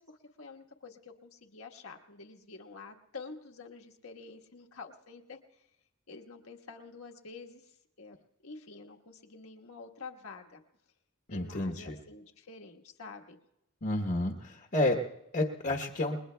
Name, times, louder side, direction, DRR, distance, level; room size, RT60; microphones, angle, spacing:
voice 1, 0.0-5.4 6.1-7.6 8.0-8.2 8.4-10.6 11.3-13.4, left 4 dB, 75° left, 4 dB, 1.4 m, -48 dB
voice 2, 11.3-12.0 13.8-15.0 15.3-16.2, left 1 dB, 45° left, 1 dB, 1.0 m, -30 dB
29.5 x 21.0 x 2.3 m, 0.88 s
head